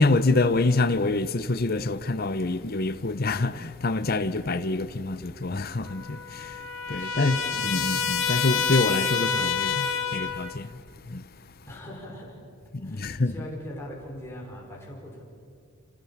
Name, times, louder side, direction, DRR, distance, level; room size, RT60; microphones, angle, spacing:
voice 1, 0.0-11.2 12.7-13.3, left 2 dB, 45° left, 0.8 m, -26 dB
Trumpet, 5.8-10.6, left 7 dB, 65° left, 2.1 m, -28 dB
voice 2, 7.0-7.9 8.9-9.5 9.8-10.1 11.7-12.4 12.8-15.2, equal, 10° left, 5.5 m, -41 dB
29.5 x 27.0 x 7.3 m
head